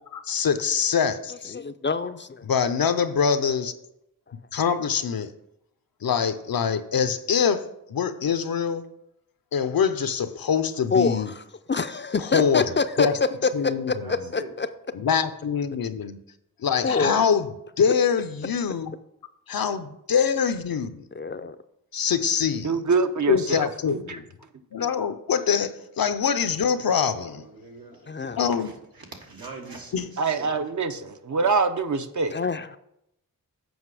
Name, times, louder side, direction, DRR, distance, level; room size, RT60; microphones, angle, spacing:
voice 1, 0.1-1.6 2.4-3.7 4.5-5.3 6.0-8.9 9.5-11.3 12.2-12.7 13.0-13.2 13.5-14.3 14.9-16.2 16.6-17.5 17.8-19.0 19.5-21.0 21.9-22.8 23.3-24.2 24.7-27.4 28.4-28.7 29.9-30.1, left 7 dB, 80° left, 11 dB, 0.6 m, -24 dB
voice 2, 1.5-2.5 10.9-11.4 11.7-14.7 16.8-17.2 21.1-21.6 28.1-28.5 32.3-32.8, left 4 dB, 35° left, 11 dB, 0.4 m, -26 dB
voice 3, 13.1-13.4 13.7-14.5 26.8-30.6 31.0-31.2, right 2 dB, 85° right, 1 dB, 1.5 m, -44 dB
voice 4, 22.6-24.2 24.8-24.9 30.2-32.4, right 4 dB, 55° right, 9 dB, 0.7 m, -25 dB
8.0 x 5.1 x 4.8 m, 0.82 s
wide cardioid pair, 60°, 35 cm